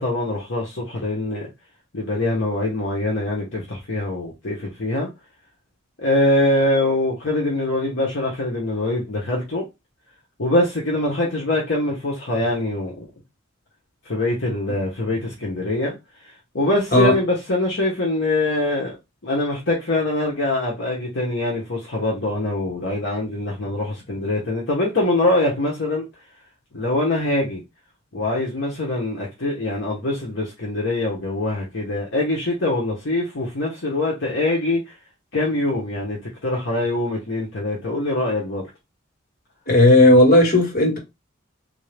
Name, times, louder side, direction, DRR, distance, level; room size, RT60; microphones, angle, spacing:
voice 1, 0.0-1.5 1.9-5.1 6.0-9.6 10.4-13.0 14.0-15.9 16.2-19.0 19.2-26.1 26.7-27.6 28.1-34.9 35.3-38.6, left 2 dB, 60° left, 1.0 m, -23 dB
voice 2, 39.7-41.0, left 1 dB, 45° left, 1.5 m, -14 dB
3.5 x 2.7 x 3.3 m
head